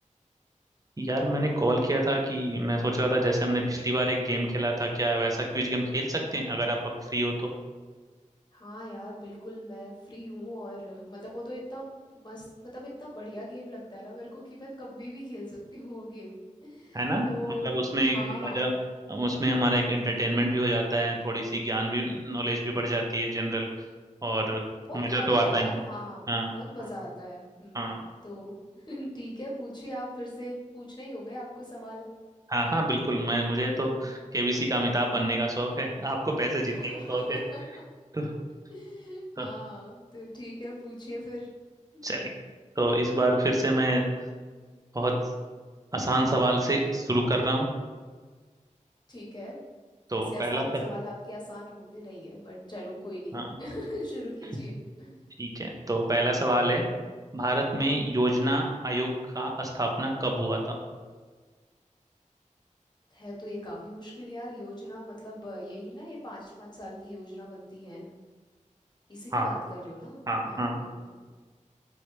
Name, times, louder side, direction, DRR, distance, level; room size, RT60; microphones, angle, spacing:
voice 1, 1.0-7.5 16.9-17.3 17.6-18.7 19.1-23.7 24.2-24.6 24.9-25.7 26.3-26.5 27.7-28.0 32.5-37.4 38.1-38.3 39.4-39.5 42.0-42.3 42.8-44.0 44.9-45.1 45.9-47.7 50.1-50.7 53.3-53.4 55.4-56.8 57.3-60.8 69.3-69.5 70.3-70.7, right 1 dB, 25° right, 1 dB, 0.7 m, -27 dB
voice 2, 8.5-11.9 12.1-17.7 18.0-18.7 24.8-32.0 36.6-37.8 38.7-41.5 49.1-49.6 50.1-55.1 63.1-68.1 69.1-71.1, equal, 35° left, -5 dB, 1.2 m, -40 dB
3.9 x 3.1 x 3.2 m, 1.4 s
wide cardioid pair, 60°, 13 cm